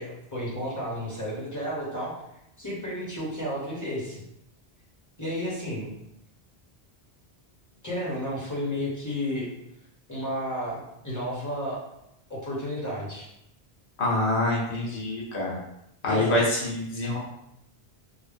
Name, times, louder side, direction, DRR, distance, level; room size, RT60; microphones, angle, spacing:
voice 1, 0.0-2.1 2.6-4.2 5.2-5.9 7.8-9.5 10.1-11.8 12.3-13.3 16.1-16.4, equal, 20° left, -6 dB, 1.1 m, -32 dB
voice 2, 14.0-15.5 16.0-17.2, left 1 dB, 85° left, -3 dB, 1.2 m, -25 dB
3.9 x 2.1 x 3.4 m, 0.80 s
omnidirectional pair, 1.1 m